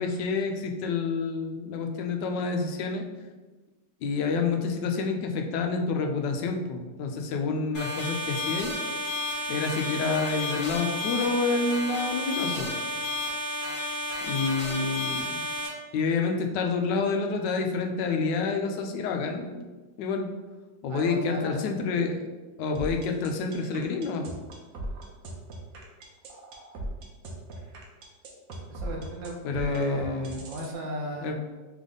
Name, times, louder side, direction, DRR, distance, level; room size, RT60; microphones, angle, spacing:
voice 1, 0.0-3.0 4.0-8.7 9.5-12.7 14.2-15.4 15.9-19.7 20.0-20.3 20.8-22.2 22.6-24.3 29.4-30.4 31.2-31.3, left 4 dB, 75° left, 4 dB, 1.1 m, -28 dB
sound 1, 7.7-15.7, left 1 dB, 35° left, 1.0 m, -32 dB
voice 2, 20.9-21.7 28.7-31.3, equal, 75° right, 0 dB, 1.4 m, -35 dB
sound 2, 22.7-30.7, right 1 dB, 60° right, 1.0 m, -38 dB
3.5 x 3.5 x 3.8 m, 1.3 s
omnidirectional pair, 2.0 m